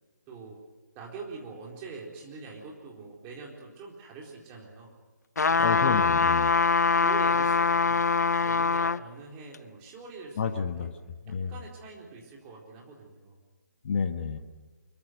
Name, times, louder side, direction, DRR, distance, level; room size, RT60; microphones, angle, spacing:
voice 1, 0.3-0.6 0.9-4.9 5.5-5.9 6.8-8.1 8.4-10.4 10.8-10.9 11.2-13.4, right 4 dB, 20° right, -1 dB, 4.1 m, -44 dB
sound 1, 5.4-9.0 9.5-9.6, left 4 dB, 65° left, 0.7 m, -23 dB
voice 2, 5.6-6.5 10.4-10.9 11.3-11.5 13.8-14.4, left 6 dB, 35° left, 6 dB, 1.5 m, -29 dB
25.0 x 22.5 x 6.4 m, 1.3 s
figure-of-eight pair, 145°, 10 cm